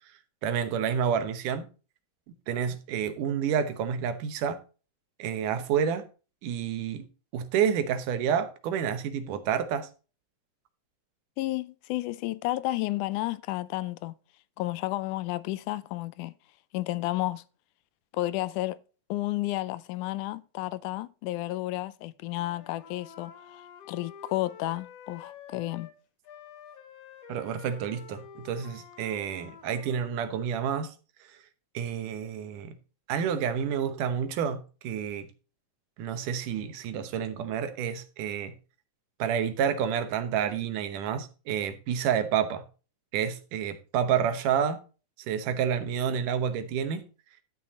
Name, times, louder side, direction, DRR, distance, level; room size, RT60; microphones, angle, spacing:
voice 1, 0.4-1.6 2.5-4.6 5.2-6.1 6.4-7.0 7.3-9.9 27.3-30.9 31.7-32.8 33.1-35.3 36.0-38.5 39.2-42.6 43.1-44.8 45.3-47.0, right 8 dB, 90° right, 2.6 m, -29 dB
voice 2, 11.4-14.1 14.6-16.3 16.7-17.4 18.1-18.8 19.1-23.6 23.9-25.9, left 17 dB, 85° left, 2.1 m, -32 dB
Wind instrument woodwind instrument, 22.3-26.0 26.2-30.1, left 7 dB, 60° left, 2.0 m, -49 dB
12.0 x 6.2 x 4.1 m
omnidirectional pair, 3.5 m